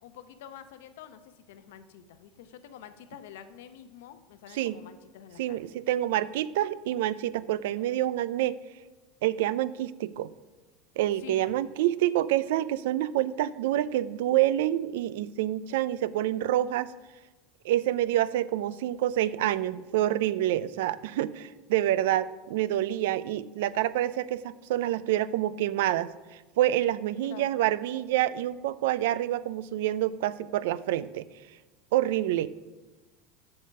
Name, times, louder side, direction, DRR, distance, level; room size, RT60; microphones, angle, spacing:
voice 1, 0.0-5.6 11.2-11.6 27.3-27.5, left 9 dB, 85° left, 10 dB, 0.7 m, -47 dB
voice 2, 5.4-8.6 9.2-10.3 11.0-16.9 17.6-26.1 26.6-31.2 31.9-32.7, right 13 dB, 80° right, 18 dB, 0.4 m, -27 dB
7.8 x 5.5 x 6.5 m, 1.2 s
supercardioid pair, 160°, 0 cm